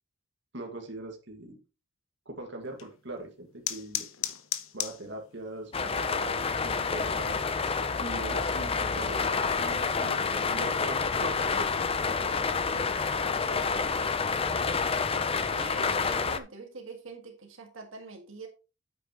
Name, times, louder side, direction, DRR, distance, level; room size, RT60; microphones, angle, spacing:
voice 1, 0.5-1.6 2.3-4.1 4.7-7.4 8.0-12.3 12.7-13.9, right 2 dB, 60° right, 2 dB, 1.9 m, -42 dB
sound 1, 2.6-13.8, left 11 dB, 85° left, 1.0 m, -43 dB
sound 2, 5.7-16.4, left 5 dB, 30° left, 0.6 m, -28 dB
voice 2, 15.5-18.5, right 3 dB, 75° right, 3 dB, 1.9 m, -44 dB
8.9 x 8.3 x 3.0 m, 0.31 s
head